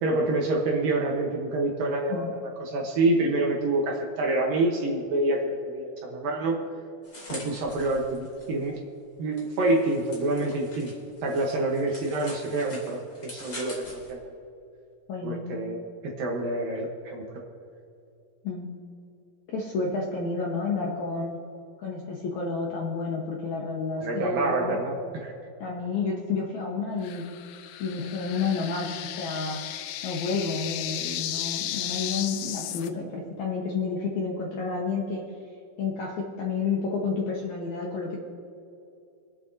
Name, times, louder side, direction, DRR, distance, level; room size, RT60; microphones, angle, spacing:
voice 1, 0.0-6.6 7.3-8.8 9.2-10.9 11.2-13.0 13.3-14.2 15.2-15.8 16.0-17.2 24.0-25.3, right 2 dB, 65° right, -1 dB, 2.4 m, -27 dB
sound 1, 7.0-8.7 9.4-14.1, left 1 dB, 25° left, 2.9 m, -44 dB
voice 2, 15.1-15.6 18.4-18.7 19.5-21.4 21.8-24.8 25.6-27.3 27.8-29.6 30.0-35.3 35.8-38.2, left 4 dB, 70° left, -2 dB, 1.8 m, -30 dB
sound 2, 27.0-32.9, left 12 dB, 85° left, 2.8 m, -34 dB
27.0 x 9.1 x 2.7 m, 2.6 s
omnidirectional pair, 5.0 m